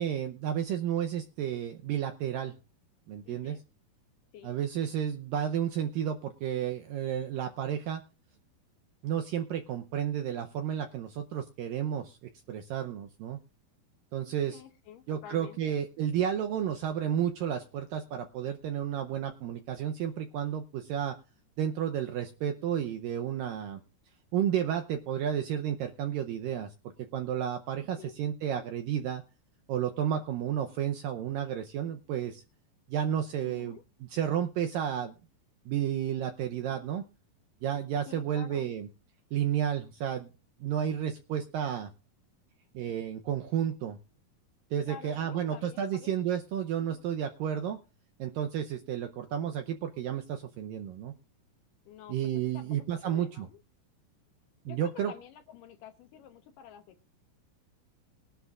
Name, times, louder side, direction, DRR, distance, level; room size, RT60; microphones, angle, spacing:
voice 1, 0.0-2.5 3.1-3.6 4.4-8.0 9.0-12.2 12.5-13.4 14.1-14.6 15.1-21.2 21.6-23.8 24.3-29.2 29.7-32.4 32.9-33.8 34.1-35.2 35.7-37.0 37.6-38.9 39.3-40.3 40.6-41.9 42.7-44.0 44.7-47.8 48.2-51.1 52.1-53.5 54.7-55.1, right 9 dB, 80° right, 5 dB, 2.1 m, -32 dB
voice 2, 3.2-3.6 4.3-4.6 14.5-15.7 28.0-28.2 33.4-33.8 38.1-38.7 44.9-46.1 46.8-47.1 51.9-53.6 54.7-57.1, left 9 dB, 70° left, 7 dB, 2.1 m, -49 dB
21.5 x 11.5 x 2.4 m, 0.32 s
omnidirectional pair, 4.7 m